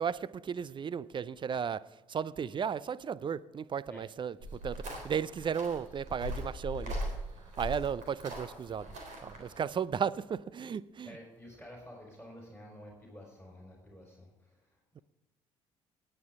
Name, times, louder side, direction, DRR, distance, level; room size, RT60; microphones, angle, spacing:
voice 1, 0.0-1.8 2.1-4.3 4.6-6.9 7.6-8.9 9.2-11.1, right 7 dB, 30° right, 0.5 m, -34 dB
sound 1, 4.4-9.6, equal, 55° right, 3.7 m, -40 dB
voice 2, 11.0-15.0, equal, ahead, 4.5 m, -51 dB
19.0 x 9.0 x 3.7 m
figure-of-eight pair, 50°, 15 cm